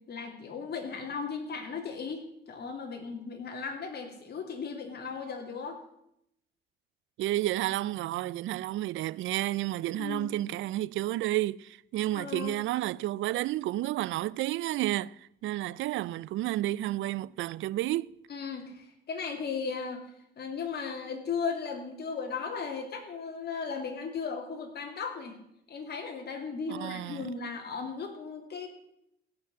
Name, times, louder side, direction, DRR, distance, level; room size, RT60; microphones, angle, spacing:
voice 1, 0.1-5.8 9.9-10.3 12.1-12.6 18.3-20.0 20.4-25.4 25.7-28.7, left 5 dB, 55° left, 2.8 m, -36 dB
voice 2, 7.2-18.1 26.7-27.3, right 15 dB, 75° right, 0.4 m, -31 dB
16.0 x 5.9 x 7.6 m
cardioid pair, 90°, 20 cm